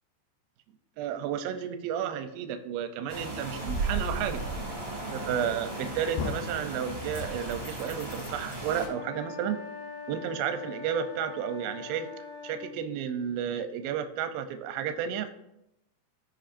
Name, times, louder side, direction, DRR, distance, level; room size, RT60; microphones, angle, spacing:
voice 1, 1.0-4.4 5.1-9.6 10.1-12.1 12.4-15.3, right 8 dB, 80° right, 8 dB, 2.3 m, -32 dB
sound 1, 3.1-8.9, right 2 dB, 25° right, 1.4 m, -35 dB
sound 2, 5.4-5.8 6.2-6.6 7.1-8.6, left 5 dB, 75° left, 2.4 m, -38 dB
sound 3, 8.8-12.8, left 5 dB, 60° left, 2.6 m, -42 dB
15.5 x 5.4 x 2.6 m, 0.85 s
omnidirectional pair, 4.8 m